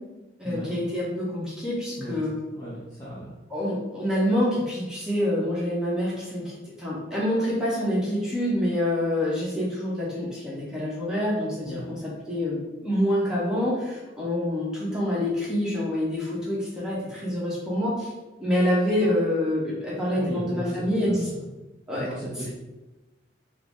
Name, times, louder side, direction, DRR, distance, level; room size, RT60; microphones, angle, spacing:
voice 1, 0.4-2.3 3.5-18.1 18.4-21.3 21.9-22.1, left 1 dB, 5° right, -7 dB, 0.9 m, -26 dB
voice 2, 2.5-3.3 11.6-11.9 20.2-21.4 21.9-22.5, equal, 15° left, -8 dB, 0.5 m, -36 dB
3.7 x 2.0 x 3.5 m, 1.1 s
head